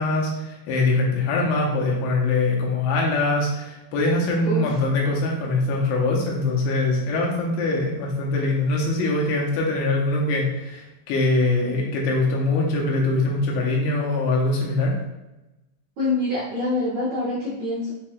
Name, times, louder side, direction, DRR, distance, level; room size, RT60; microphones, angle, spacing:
voice 1, 0.0-14.9, left 2 dB, 85° left, -2 dB, 2.9 m, -23 dB
voice 2, 16.0-17.9, left 2 dB, 70° right, -9 dB, 1.8 m, -25 dB
6.4 x 3.1 x 2.3 m, 1.0 s
omnidirectional pair, 4.9 m